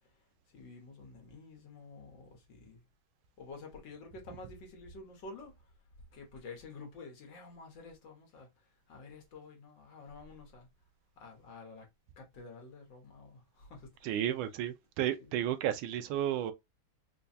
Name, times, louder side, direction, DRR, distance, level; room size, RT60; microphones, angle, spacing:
voice 1, 0.5-2.8 3.4-5.7 6.1-10.7 11.2-11.9 12.2-14.3, left 3 dB, 70° left, 1.8 m, -50 dB
voice 2, 14.0-16.5, right 11 dB, 85° right, 1.4 m, -32 dB
4.5 x 2.3 x 2.5 m
omnidirectional pair, 2.2 m